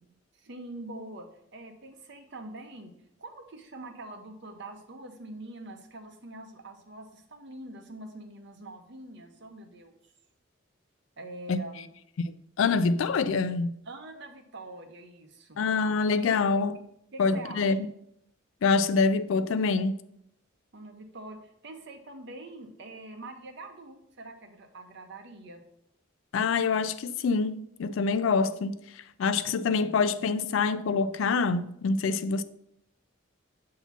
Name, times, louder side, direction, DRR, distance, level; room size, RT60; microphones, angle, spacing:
voice 1, 0.3-2.9 3.2-10.1 11.2-11.9 13.8-15.7 16.2-16.3 17.1-17.8 20.7-25.6, right 2 dB, 55° right, 0.7 m, -44 dB
voice 2, 12.6-13.7 15.6-16.8 17.2-17.9 18.6-19.9 26.3-28.8 29.2-32.4, left 4 dB, 70° left, 0.4 m, -25 dB
7.0 x 2.9 x 5.7 m
head